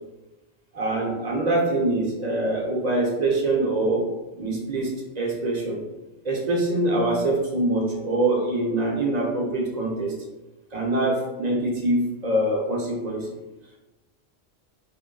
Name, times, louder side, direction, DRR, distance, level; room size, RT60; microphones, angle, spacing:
voice 1, 0.7-4.1 4.4-5.8 6.2-10.2 10.7-13.3, right 2 dB, 45° right, -2 dB, 0.9 m, -24 dB
3.6 x 2.1 x 3.8 m, 1.1 s
omnidirectional pair, 1.0 m